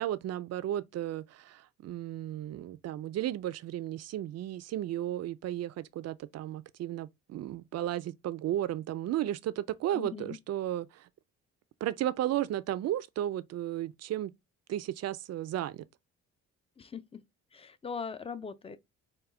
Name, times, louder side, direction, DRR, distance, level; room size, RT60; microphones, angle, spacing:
voice 1, 0.0-11.0 11.8-14.3 14.7-15.8, right 12 dB, 60° right, 0.5 m, -34 dB
voice 2, 9.9-10.4 16.8-17.2 17.5-18.8, left 6 dB, 20° left, 0.5 m, -40 dB
4.9 x 2.3 x 3.3 m
cardioid pair, 90°, 30 cm